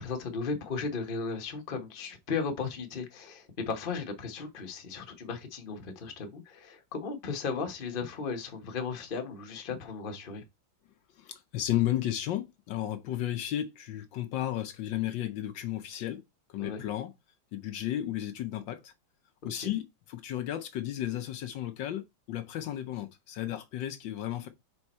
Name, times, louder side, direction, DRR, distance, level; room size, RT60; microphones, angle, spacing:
voice 1, 0.0-10.4 16.6-16.8 19.4-19.7, left 5 dB, 35° left, 1.1 m, -36 dB
voice 2, 11.1-16.2 16.5-17.1 17.5-18.9 19.4-24.5, left 12 dB, 70° left, 1.3 m, -33 dB
5.2 x 4.6 x 4.2 m
omnidirectional pair, 2.2 m